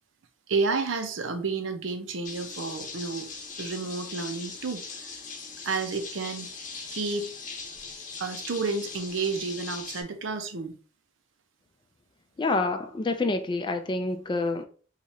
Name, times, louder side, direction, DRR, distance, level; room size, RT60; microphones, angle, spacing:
voice 1, 0.5-3.3 3.6-5.1 5.6-6.5 6.9-7.3 8.2-10.8, right 4 dB, 80° right, 0.6 m, -31 dB
sound 1, 2.2-10.0, left 4 dB, 40° left, 0.8 m, -40 dB
voice 2, 12.4-14.6, left 3 dB, 25° left, 0.3 m, -27 dB
2.9 x 2.4 x 4.1 m
head